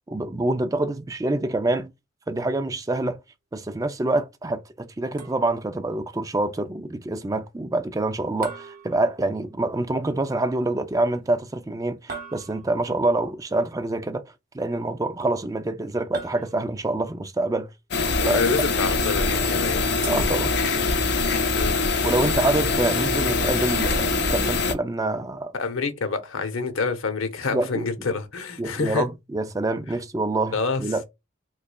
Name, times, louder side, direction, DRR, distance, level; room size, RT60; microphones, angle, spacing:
voice 1, 0.1-1.9 2.3-3.2 3.5-14.2 14.5-17.7 18.2-18.4 20.1-20.5 22.0-25.5 27.5-27.8 28.6-31.0, right 2 dB, 15° right, 0.3 m, -26 dB
sound 1, 5.2-5.8 8.4-9.7 12.1-13.0 16.1-17.0 20.0-21.0, right 4 dB, 45° right, 0.7 m, -40 dB
sound 2, 17.9-24.7, left 3 dB, 55° left, 0.5 m, -23 dB
voice 2, 18.1-19.8 21.6-21.7 25.5-29.1 30.5-30.8, left 4 dB, 80° left, 0.8 m, -27 dB
3.7 x 3.2 x 2.3 m
head